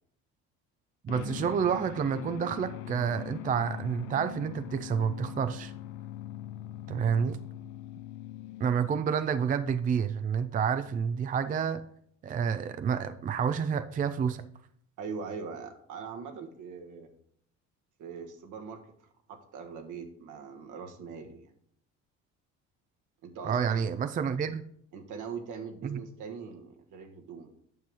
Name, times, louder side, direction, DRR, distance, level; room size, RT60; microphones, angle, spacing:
voice 1, 1.0-5.7 6.9-7.4 8.6-11.8 12.2-14.5 23.4-24.6 25.8-26.0, right 7 dB, 25° right, 0.4 m, -29 dB
sound 1, 1.1-9.3, left 13 dB, 80° left, 0.6 m, -42 dB
voice 2, 15.0-17.1 18.0-18.8 19.3-21.5 23.2-23.9 24.9-27.5, right 5 dB, 65° right, 1.4 m, -41 dB
9.1 x 6.0 x 3.5 m
supercardioid pair, 80°, 32 cm